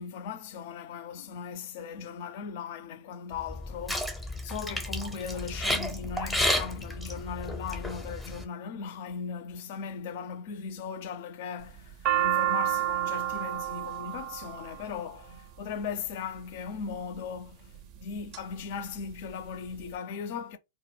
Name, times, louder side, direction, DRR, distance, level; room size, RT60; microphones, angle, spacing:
voice 1, 0.0-20.6, left 6 dB, 50° left, 0.4 m, -38 dB
sound 1, 3.4-8.4, left 1 dB, ahead, 0.6 m, -32 dB
sound 2, 11.6-15.8 16.7-17.1 17.7-18.4 18.7-18.8 19.0-19.8, right 13 dB, 40° right, 0.5 m, -30 dB
2.1 x 2.1 x 3.2 m
figure-of-eight pair, 105°, 0 cm